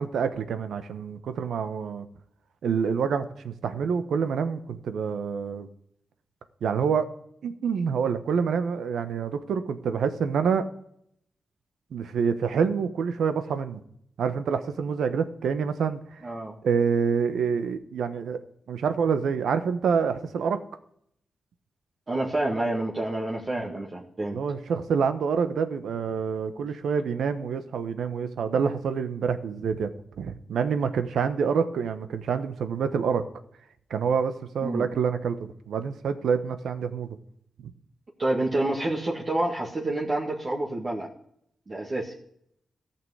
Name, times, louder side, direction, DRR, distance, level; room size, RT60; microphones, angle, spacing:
voice 1, 0.0-2.1 2.6-5.7 6.6-7.1 7.4-10.6 11.9-13.8 14.2-16.0 16.6-18.4 18.7-20.6 24.3-29.9 30.2-33.2 33.9-37.2 37.6-37.7, right 6 dB, 90° right, 10 dB, 1.1 m, -27 dB
voice 2, 16.2-16.5 22.1-24.4 34.6-34.9 38.2-41.1 41.7-42.1, right 1 dB, 40° right, -3 dB, 1.9 m, -28 dB
14.0 x 5.9 x 9.5 m, 0.71 s
cardioid pair, 80°, 0 cm